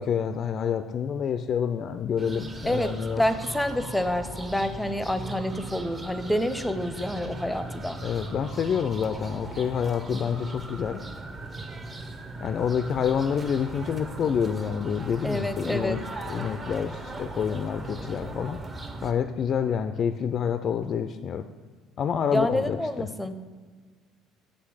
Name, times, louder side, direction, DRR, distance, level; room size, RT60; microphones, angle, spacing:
voice 1, 0.0-3.2 8.0-11.0 12.4-16.0 16.3-18.6 19.0-21.5 22.0-22.8, left 7 dB, 50° left, 9 dB, 0.3 m, -28 dB
sound 1, 2.2-19.1, right 2 dB, 30° right, 0.8 m, -38 dB
voice 2, 2.6-8.0 15.2-16.0 22.3-23.3, left 1 dB, 5° left, 10 dB, 0.6 m, -28 dB
7.6 x 3.2 x 6.2 m, 1.5 s
hypercardioid pair, 70°, 0 cm